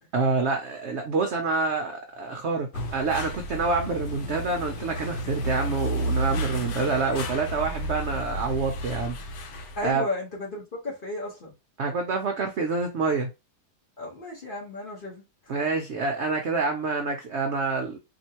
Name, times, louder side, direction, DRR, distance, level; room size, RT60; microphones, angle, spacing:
voice 1, 0.1-9.4 9.8-10.1 11.8-13.3 15.5-18.0, right 4 dB, 65° right, 0.7 m, -27 dB
sound 1, 2.7-9.9, right 1 dB, 75° left, 1.3 m, -32 dB
voice 2, 9.7-11.5 14.0-15.6, left 2 dB, 35° left, 1.1 m, -34 dB
4.2 x 3.0 x 2.8 m
omnidirectional pair, 1.8 m